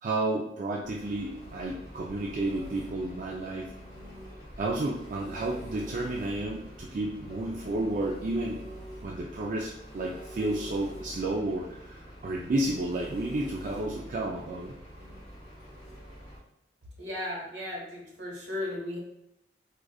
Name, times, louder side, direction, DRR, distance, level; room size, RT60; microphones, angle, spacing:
voice 1, 0.0-3.7 4.6-8.6 9.0-14.7, right 2 dB, 45° right, -2 dB, 0.3 m, -31 dB
Engine, 0.8-16.4, equal, 20° left, 1.0 m, -45 dB
voice 2, 17.0-19.0, left 1 dB, 80° right, -4 dB, 1.3 m, -35 dB
4.8 x 2.4 x 2.3 m, 0.80 s
head